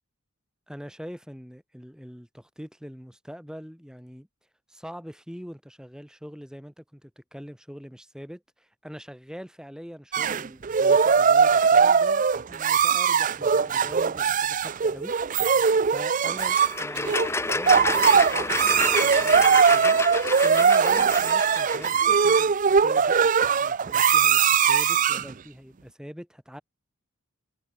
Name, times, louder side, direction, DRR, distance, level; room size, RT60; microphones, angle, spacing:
voice 1, 0.7-4.3 4.7-15.2 15.9-17.2 17.5-20.0 20.4-22.6 22.8-23.1 23.6-26.6, equal, 5° right, 7.4 m, -43 dB
sound 1, 10.1-25.3, right 6 dB, 40° right, 0.5 m, -20 dB
sound 2, 16.3-22.0, left 2 dB, 10° left, 1.5 m, -29 dB
head